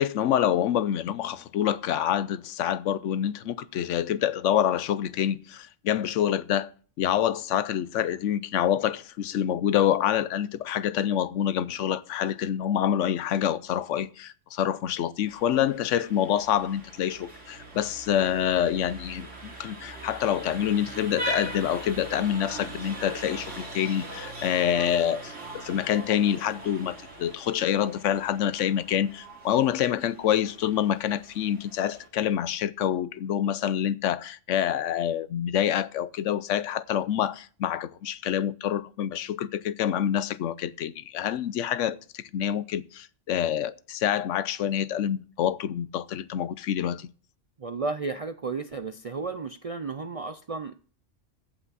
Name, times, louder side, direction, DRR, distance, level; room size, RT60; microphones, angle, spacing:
voice 1, 0.0-6.7 7.0-47.1, left 10 dB, 80° left, 0.9 m, -27 dB
Vehicle horn car horn honking, 15.3-32.1, right 2 dB, 75° right, 3.0 m, -41 dB
voice 2, 47.6-50.8, right 4 dB, 55° right, 0.4 m, -33 dB
15.5 x 5.8 x 4.1 m
omnidirectional pair, 1.3 m